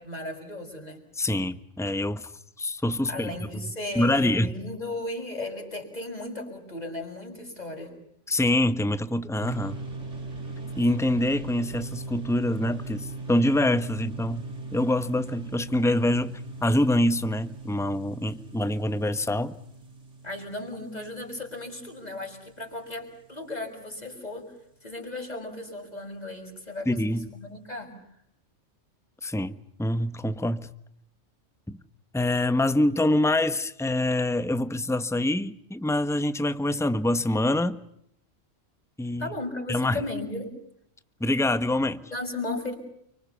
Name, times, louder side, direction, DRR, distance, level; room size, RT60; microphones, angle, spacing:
voice 1, 0.0-1.0 3.1-7.9 20.2-24.5 24.8-27.9 39.2-40.5 42.1-42.8, left 2 dB, 35° left, 6.1 m, -35 dB
voice 2, 1.2-2.3 2.6-3.3 3.9-4.6 8.3-9.8 10.8-19.6 26.9-27.3 29.2-30.7 31.7-31.8 32.1-37.8 39.0-39.3 39.7-40.0 41.2-42.0, left 1 dB, ahead, 1.1 m, -25 dB
sound 1, 9.4-22.9, right 3 dB, 75° right, 3.9 m, -39 dB
30.0 x 25.0 x 7.0 m
omnidirectional pair, 1.3 m